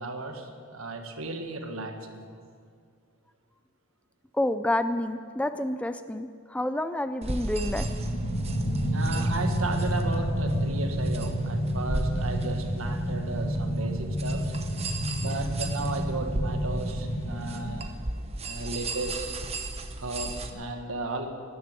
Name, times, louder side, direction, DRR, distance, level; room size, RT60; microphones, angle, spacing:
voice 1, 0.0-2.2 8.9-14.5 15.2-17.9 18.4-19.4 20.0-21.3, right 2 dB, 70° right, 5 dB, 1.6 m, -35 dB
voice 2, 4.3-7.9 14.8-15.1, left 1 dB, 5° left, 11 dB, 0.4 m, -29 dB
sound 1, 7.2-20.5, right 2 dB, 30° right, 0.9 m, -35 dB
sound 2, 7.6-17.8, equal, 65° left, 2.3 m, -30 dB
13.0 x 11.0 x 9.0 m, 2.3 s
head